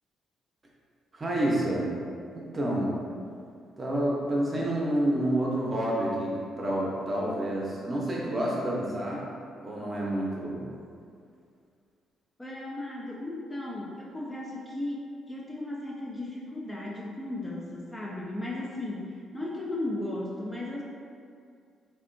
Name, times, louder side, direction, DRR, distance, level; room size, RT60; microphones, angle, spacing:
voice 1, 1.1-1.9 2.3-2.9 3.8-9.3 9.6-10.7, right 1 dB, 30° right, -4 dB, 0.7 m, -28 dB
voice 2, 12.4-20.8, left 1 dB, 15° left, -4 dB, 0.3 m, -36 dB
3.4 x 2.2 x 2.5 m, 2.2 s
cardioid pair, 90°, 0 cm